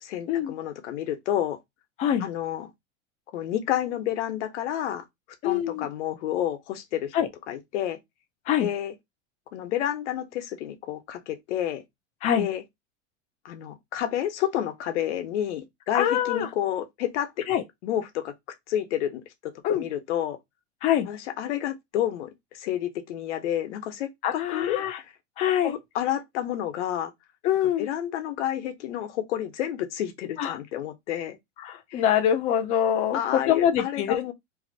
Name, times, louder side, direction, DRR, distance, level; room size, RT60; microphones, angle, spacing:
voice 1, 0.0-1.6 2.2-2.7 3.3-5.0 5.4-7.1 7.5-8.0 8.6-8.9 9.5-11.8 12.4-12.6 13.4-17.4 17.8-18.3 18.7-20.4 21.1-25.1 25.6-27.1 27.8-31.4 31.9-32.0 33.1-34.3, left 11 dB, 80° left, 0.9 m, -30 dB
voice 2, 5.4-5.9 7.1-7.3 8.5-8.7 12.2-12.5 15.9-16.5 17.5-17.6 19.6-19.9 20.8-21.1 24.2-25.0 25.4-25.7 27.4-27.9 30.4-30.6 31.6-34.3, left 10 dB, 20° left, 0.3 m, -24 dB
2.8 x 2.5 x 3.9 m
supercardioid pair, 150°, 35 cm